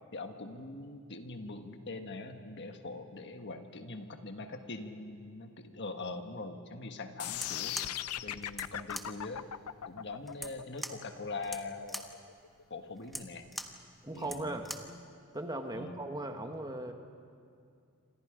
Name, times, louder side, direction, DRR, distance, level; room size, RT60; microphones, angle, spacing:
voice 1, 0.1-7.9 8.2-9.4 9.9-12.2 12.7-13.5 14.1-14.5 15.7-16.0, left 3 dB, 50° left, 6 dB, 1.5 m, -42 dB
sound 1, 7.2-13.2, left 11 dB, 80° left, 0.6 m, -39 dB
sound 2, 7.3-15.0, equal, ahead, 1.2 m, -45 dB
voice 2, 14.0-14.7 15.3-16.9, right 1 dB, 20° right, 5 dB, 1.4 m, -38 dB
28.5 x 26.0 x 5.1 m, 2.4 s
head